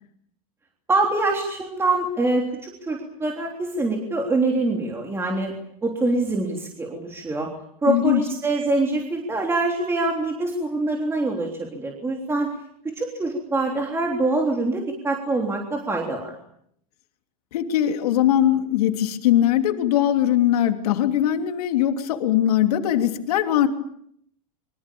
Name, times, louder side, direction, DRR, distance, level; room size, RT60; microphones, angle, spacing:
voice 1, 0.9-5.5 5.8-7.5 7.8-12.5 13.0-16.3, right 2 dB, 10° right, 1 dB, 3.4 m, -24 dB
voice 2, 7.9-8.2 17.5-23.7, left 11 dB, 80° left, 5 dB, 3.1 m, -21 dB
28.0 x 24.5 x 7.0 m, 0.69 s
supercardioid pair, 140°, 19 cm